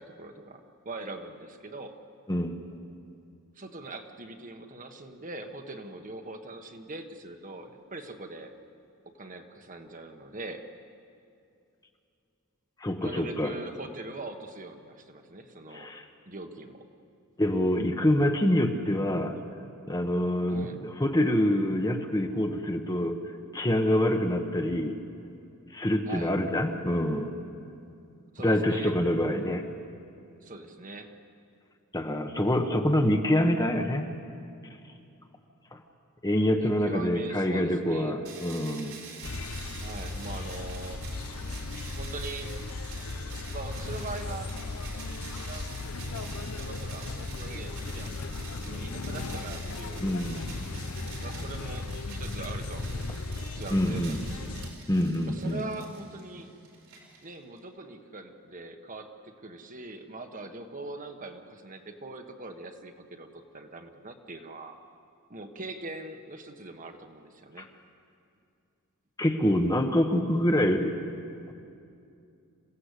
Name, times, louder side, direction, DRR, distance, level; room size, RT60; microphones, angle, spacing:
voice 1, 0.0-1.9 3.5-8.5 9.2-10.7 13.0-15.9 16.3-16.8 20.5-20.8 26.0-26.3 28.3-28.9 30.4-31.1 36.5-38.1 39.8-41.0 41.9-42.5 43.5-44.5 45.0-45.2 45.5-50.2 51.2-54.0 54.3-54.5 55.2-56.5 57.2-64.8 65.3-67.7, right 2 dB, 35° right, 5 dB, 1.4 m, -42 dB
voice 2, 12.8-13.5 15.7-16.0 17.4-19.4 19.9-23.2 23.5-25.0 25.7-27.3 28.4-29.6 31.9-34.1 35.7-35.8 36.2-39.0 50.0-50.4 53.7-54.2 54.9-55.7 67.6-67.7 69.2-71.1, left 1 dB, 15° left, 5 dB, 1.2 m, -26 dB
sound 1, 38.2-57.6, right 4 dB, 75° right, 4.5 m, -47 dB
sound 2, 39.2-54.7, left 3 dB, 85° left, 1.0 m, -36 dB
27.5 x 16.5 x 8.3 m, 2.5 s
head